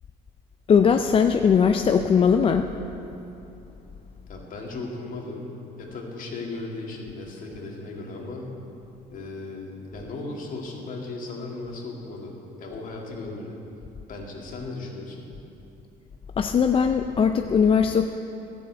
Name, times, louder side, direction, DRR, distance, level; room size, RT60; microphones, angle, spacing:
voice 1, 0.7-2.7 16.4-18.1, left 6 dB, 35° left, 6 dB, 0.4 m, -19 dB
voice 2, 4.3-5.5 5.8-8.6 9.1-13.6 14.1-15.2, left 3 dB, 55° left, -1 dB, 2.2 m, -36 dB
12.5 x 6.9 x 8.0 m, 2.9 s
cardioid pair, 110°, 17 cm